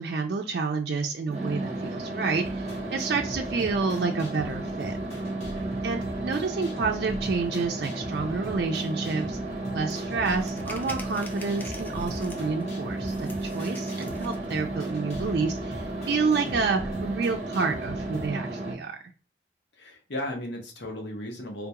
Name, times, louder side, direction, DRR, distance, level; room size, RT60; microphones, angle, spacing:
voice 1, 0.0-5.0 5.8-9.4 9.7-19.0, right 4 dB, 60° right, 2 dB, 0.4 m, -29 dB
sound 1, 1.3-18.7, right 2 dB, 40° right, 0.7 m, -33 dB
sound 2, 2.4-18.3, equal, 40° left, 1.2 m, -42 dB
sound 3, 9.9-10.0 10.4-12.6 13.0-14.5, left 1 dB, 10° left, 0.4 m, -45 dB
voice 2, 19.7-21.7, left 1 dB, 80° left, 1 dB, 0.9 m, -36 dB
3.7 x 2.3 x 2.8 m, 0.39 s
head